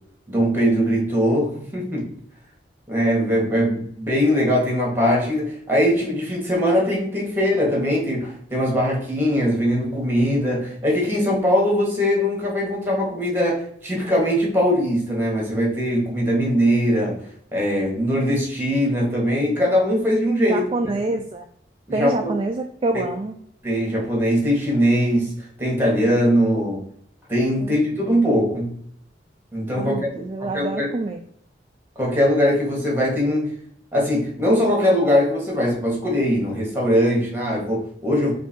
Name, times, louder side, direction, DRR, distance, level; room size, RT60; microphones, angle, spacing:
voice 1, 0.3-2.1 2.9-17.1 17.5-20.6 21.9-22.3 22.9-23.0 23.6-25.3 25.6-26.8 27.3-28.7 29.5-30.1 30.4-30.9 32.0-33.5 33.9-38.3, equal, 10° right, -2 dB, 1.6 m, -21 dB
voice 2, 20.5-21.5 21.9-23.3 27.6-27.8 29.7-31.2, right 2 dB, 30° right, 4 dB, 0.3 m, -26 dB
4.6 x 2.7 x 4.3 m, 0.68 s
head